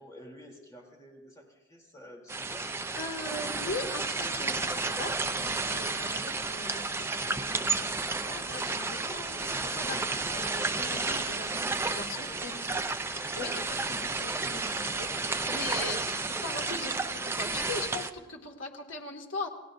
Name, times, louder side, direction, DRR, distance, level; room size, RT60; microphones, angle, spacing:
voice 1, 0.0-3.0 12.1-12.6, equal, 20° left, -1 dB, 3.1 m, -50 dB
sound 1, 2.3-18.1, right 3 dB, 15° right, 0.5 m, -32 dB
voice 2, 3.0-7.8 8.1-12.7 13.4-19.5, left 2 dB, 90° left, 1 dB, 2.1 m, -40 dB
28.5 x 17.5 x 2.6 m, 1.2 s
head